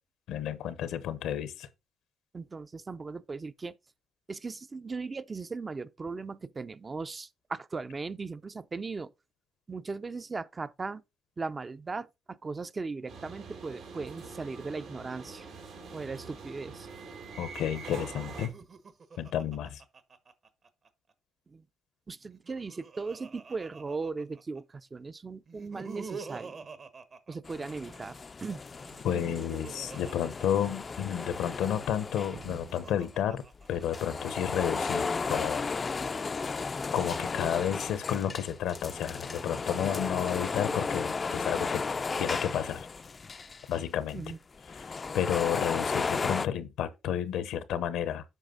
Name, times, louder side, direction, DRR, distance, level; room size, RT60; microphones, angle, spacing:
voice 1, 0.3-1.7 17.4-18.5 19.2-19.8 29.0-33.4 33.7-35.7 36.9-41.8 42.2-42.9 43.7-44.2 45.1-48.2, left 9 dB, 85° left, 0.9 m, -31 dB
voice 2, 2.3-3.8 4.3-9.1 9.7-11.0 11.4-15.5 15.9-16.9 21.5-21.7 22.1-26.6 27.3-28.6 44.1-44.4, right 4 dB, 30° right, 0.5 m, -38 dB
sound 1, 13.1-18.5, right 5 dB, 85° right, 2.8 m, -44 dB
Laughter, 18.4-20.9 22.2-24.6 25.5-28.0 28.8-31.2 32.1-34.0, right 5 dB, 50° right, 1.0 m, -46 dB
sound 2, 27.4-33.1 33.6-43.8 44.1-44.2 44.6-46.5, left 4 dB, 35° left, 0.3 m, -34 dB
8.2 x 5.0 x 3.8 m
cardioid pair, 90°, 0 cm